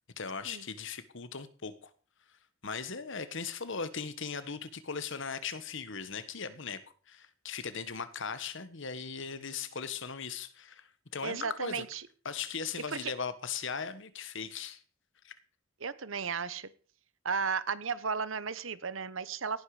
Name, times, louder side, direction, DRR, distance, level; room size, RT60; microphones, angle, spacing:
voice 1, 0.2-1.9 2.6-6.8 7.1-11.8 12.2-14.8 15.2-15.3, left 5 dB, 60° left, 13 dB, 1.4 m, -38 dB
voice 2, 11.2-12.0 13.0-13.1 15.8-16.7 17.2-19.6, right 5 dB, 65° right, 17 dB, 1.0 m, -34 dB
17.5 x 11.5 x 5.0 m, 0.40 s
head